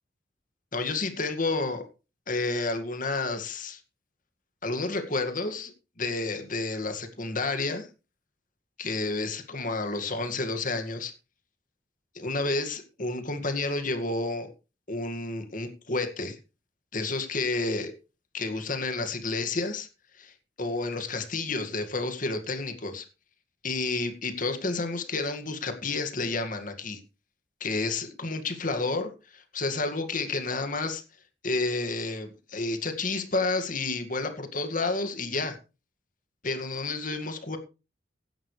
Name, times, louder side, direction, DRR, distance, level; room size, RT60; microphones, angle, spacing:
voice 1, 0.7-1.9 2.3-3.8 4.6-5.7 6.0-7.9 8.8-11.1 12.1-14.5 14.9-16.4 16.9-17.9 18.3-19.9 20.2-20.3 20.6-23.1 23.6-27.0 27.6-31.0 31.4-35.6 36.4-37.6, left 3 dB, 45° left, 7 dB, 2.1 m, -30 dB
17.0 x 11.5 x 3.3 m, 0.30 s
head